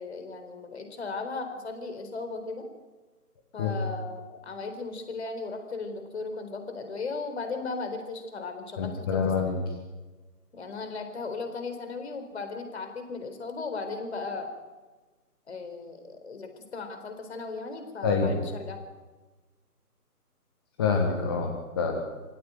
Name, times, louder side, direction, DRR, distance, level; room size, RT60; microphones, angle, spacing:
voice 1, 0.0-2.7 3.5-9.2 10.5-14.5 15.5-18.8, left 4 dB, 40° left, 7 dB, 4.4 m, -36 dB
voice 2, 8.8-9.6 18.0-18.4 20.8-22.0, left 5 dB, 15° left, 2 dB, 1.5 m, -26 dB
26.0 x 16.5 x 9.4 m, 1.3 s
figure-of-eight pair, 155°, 48 cm